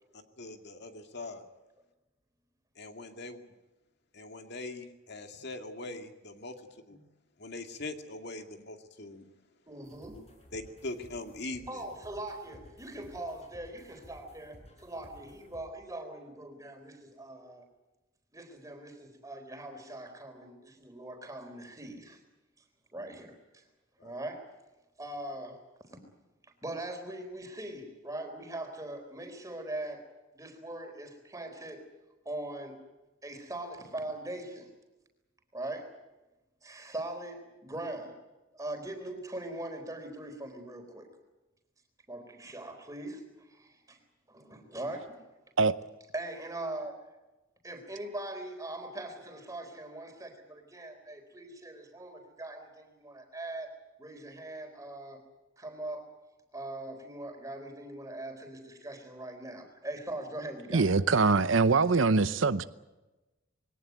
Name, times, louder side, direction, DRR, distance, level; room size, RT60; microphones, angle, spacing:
voice 1, 0.1-1.5 2.8-3.4 4.1-7.0 7.4-9.2 10.5-11.8 24.0-24.1, left 2 dB, 55° left, 6 dB, 2.2 m, -42 dB
voice 2, 9.7-10.2 11.7-17.6 18.3-22.2 22.9-23.6 24.0-24.5 25.0-25.6 25.9-26.0 26.6-30.1 30.3-31.9 32.3-32.8 33.2-34.7 35.5-35.9 36.6-38.2 38.5-41.1 42.1-44.0 44.3-45.3 46.1-47.0 47.6-55.2 55.6-56.1 56.5-60.9, right 1 dB, 15° right, 5 dB, 4.0 m, -41 dB
sound 1, 9.8-15.6, equal, 30° left, 6.2 m, -56 dB
voice 3, 60.7-62.6, right 4 dB, 70° right, 13 dB, 0.8 m, -23 dB
22.0 x 18.0 x 9.3 m, 1.1 s
head